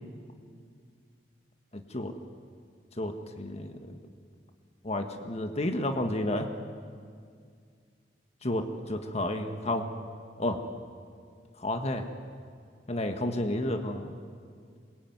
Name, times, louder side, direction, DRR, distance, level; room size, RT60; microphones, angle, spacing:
voice 1, 1.7-2.1 3.0-4.0 4.8-6.5 8.4-9.9 10.4-10.6 11.6-12.1 12.9-14.1, left 1 dB, 35° left, 6 dB, 1.7 m, -31 dB
27.0 x 23.0 x 9.5 m, 2.2 s
head